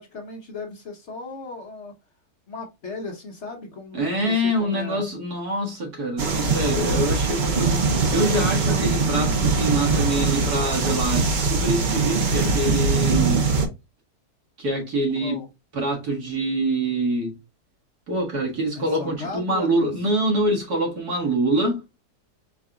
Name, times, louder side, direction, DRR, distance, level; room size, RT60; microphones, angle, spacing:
voice 1, 0.0-1.9 2.5-5.1 15.2-15.5 18.8-20.1, left 3 dB, 50° left, 1.1 m, -36 dB
voice 2, 3.9-13.4 14.6-15.4 15.7-17.3 18.1-21.8, right 1 dB, 70° right, 2.3 m, -25 dB
sound 1, 6.2-13.7, right 4 dB, 45° right, 0.6 m, -22 dB
4.7 x 4.0 x 2.3 m
omnidirectional pair, 1.7 m